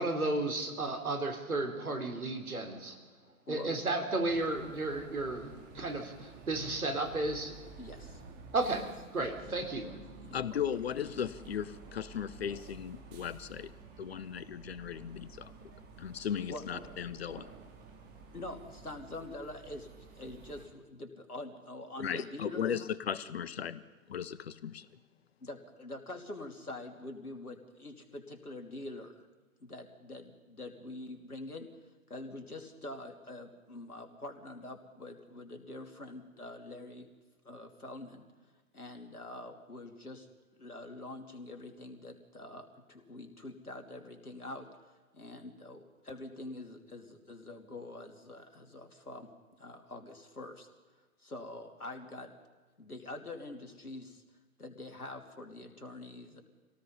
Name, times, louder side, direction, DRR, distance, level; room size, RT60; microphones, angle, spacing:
voice 1, 0.0-3.0 3.5-7.5 8.5-8.8 9.1-9.9, right 2 dB, 70° right, 5 dB, 3.8 m, -33 dB
voice 2, 3.5-3.8 7.8-8.2 8.7-8.9 9.2-9.3 9.8-10.6 16.5-16.6 18.3-22.8 25.4-29.3 29.6-31.7 32.1-37.1 37.4-38.3 38.7-40.3 40.6-44.7 45.1-50.7 51.2-52.3 52.8-54.2 54.6-56.4, left 2 dB, 80° left, 5 dB, 3.1 m, -45 dB
sound 1, 4.2-20.7, right 4 dB, 20° right, 2.7 m, -52 dB
voice 3, 10.3-13.7 14.0-15.5 16.0-17.5 22.0-23.8 24.1-24.9, left 8 dB, 45° left, 16 dB, 0.9 m, -36 dB
26.0 x 18.0 x 5.5 m, 1.3 s
figure-of-eight pair, 120°, 44 cm